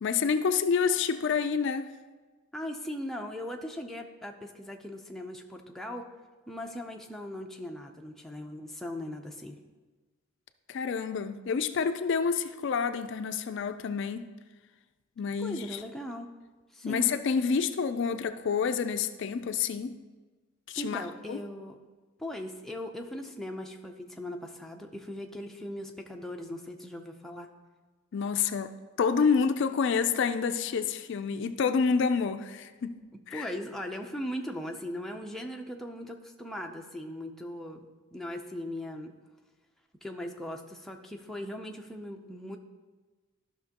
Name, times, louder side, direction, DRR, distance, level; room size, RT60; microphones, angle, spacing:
voice 1, 0.0-1.9 10.7-14.3 15.2-15.8 16.8-20.0 20.7-21.4 28.1-33.0 33.3-33.5, left 6 dB, 55° left, 10 dB, 0.4 m, -28 dB
voice 2, 2.5-6.1 6.5-9.6 15.4-16.4 16.7-17.1 20.8-21.8 22.2-27.5 33.3-39.1 40.0-42.6, left 1 dB, ahead, 2 dB, 0.5 m, -39 dB
13.0 x 5.9 x 2.9 m, 1.3 s
head